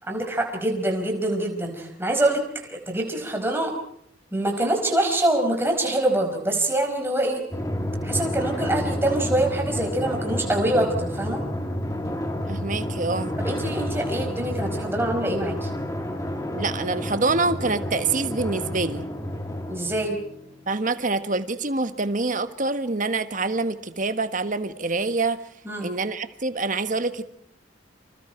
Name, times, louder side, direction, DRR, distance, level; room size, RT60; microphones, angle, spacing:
voice 1, 0.0-3.7 4.3-7.4 8.0-11.4 13.4-15.7 19.7-20.2 25.6-25.9, right 1 dB, 10° right, 2 dB, 4.9 m, -25 dB
Drum, 7.5-20.6, left 1 dB, 15° left, 2.5 m, -30 dB
voice 2, 12.5-13.3 16.5-19.1 20.7-25.4 25.8-27.2, right 3 dB, 45° right, 10 dB, 1.4 m, -26 dB
30.0 x 26.0 x 4.5 m, 0.68 s
head